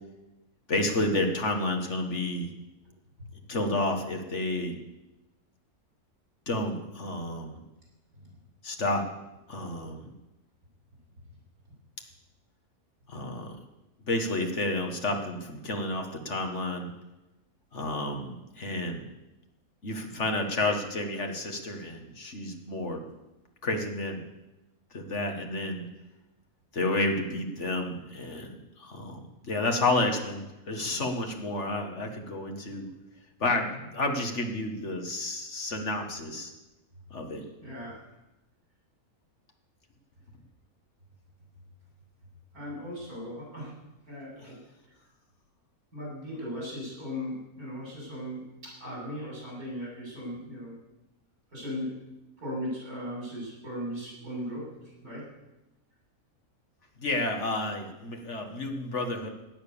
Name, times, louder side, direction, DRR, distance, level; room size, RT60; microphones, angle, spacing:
voice 1, 0.7-2.5 3.5-4.7 6.5-7.6 8.6-9.0 9.5-10.1 13.1-13.6 14.1-16.9 17.7-19.0 19.8-23.0 23.6-24.2 24.9-25.9 26.7-32.9 33.4-36.5 37.1-37.4 44.4-44.5 57.0-59.3, left 2 dB, 55° left, 4 dB, 1.9 m, -30 dB
voice 2, 37.6-38.1 42.5-43.8 44.1-44.6 45.9-50.7 51.5-52.0 52.4-55.3, equal, 85° right, -4 dB, 7.7 m, -38 dB
17.0 x 9.3 x 6.9 m, 1.0 s
omnidirectional pair, 1.5 m